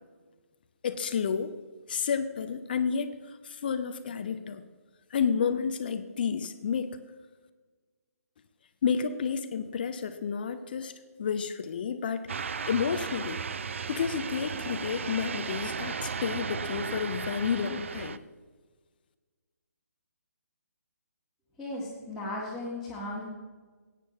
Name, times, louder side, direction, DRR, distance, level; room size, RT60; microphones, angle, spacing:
voice 1, 0.8-1.5 1.9-4.6 5.1-7.0 8.8-10.9 11.2-12.2 12.7-13.4 13.9-18.2, left 6 dB, 35° left, 10 dB, 0.6 m, -30 dB
sound 1, 12.3-18.2, right 5 dB, 50° right, 0.5 m, -35 dB
voice 2, 21.6-23.2, left 1 dB, ahead, -9 dB, 1.8 m, -36 dB
17.0 x 9.1 x 3.1 m, 1.4 s
figure-of-eight pair, 140°, 9 cm